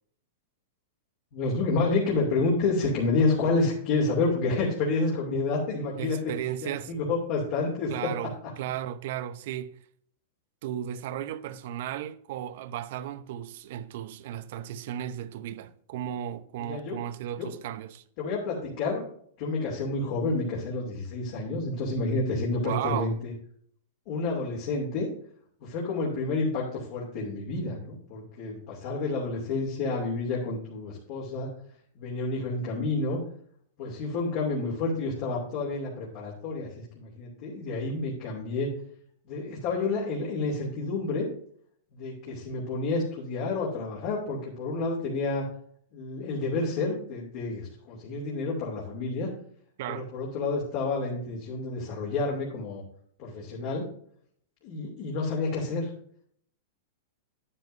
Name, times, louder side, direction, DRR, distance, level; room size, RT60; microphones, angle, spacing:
voice 1, 1.3-6.2 6.6-8.1 16.6-17.0 17.4-17.5 18.2-19.1 19.4-23.3 24.1-25.1 25.6-31.5 31.9-33.2 33.8-38.7 39.2-41.3 41.9-45.5 45.9-49.3 49.9-52.8 53.2-53.9 54.6-55.9, left 3 dB, 55° left, 2.8 m, -29 dB
voice 2, 6.0-6.9 7.9-9.8 10.6-18.0 22.6-23.1 49.8-50.1, right 11 dB, 60° right, 0.7 m, -35 dB
9.8 x 9.2 x 2.7 m
hypercardioid pair, 115°, 0 cm